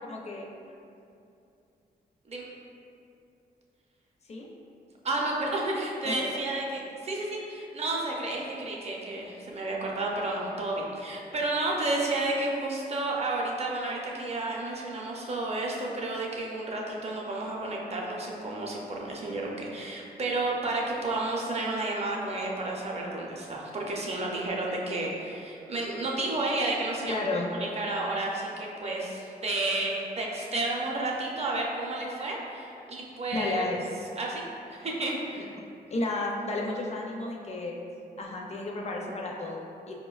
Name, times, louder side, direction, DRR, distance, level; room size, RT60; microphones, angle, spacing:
voice 1, 0.1-0.5 4.3-4.5 6.0-6.3 27.1-27.5 33.3-33.8 35.4-35.5 35.9-37.8 38.2-39.9, left 2 dB, 40° left, 0 dB, 0.4 m, -32 dB
voice 2, 5.0-33.7 34.2-34.4 34.7-35.5, right 2 dB, 40° right, -2 dB, 0.5 m, -31 dB
4.7 x 2.1 x 2.3 m, 2.6 s
cardioid pair, 95°, 16 cm